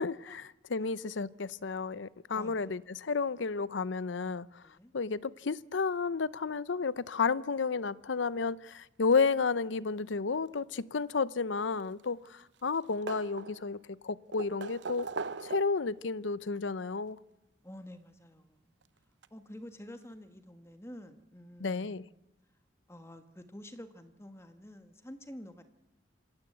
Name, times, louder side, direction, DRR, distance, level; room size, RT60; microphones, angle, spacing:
voice 1, 0.0-4.6 4.9-15.1 15.4-17.2 21.6-22.1, left 4 dB, 85° left, 0.7 m, -32 dB
voice 2, 2.3-2.7 4.6-4.9 17.6-18.7 19.3-22.1 22.9-25.6, left 1 dB, 15° left, 1.5 m, -49 dB
sound 1, 11.7-12.4 12.7-13.8 14.3-16.0 17.2-17.3 18.8-18.9 19.2-19.3, right 4 dB, 75° right, 0.8 m, -40 dB
26.0 x 16.5 x 7.9 m
head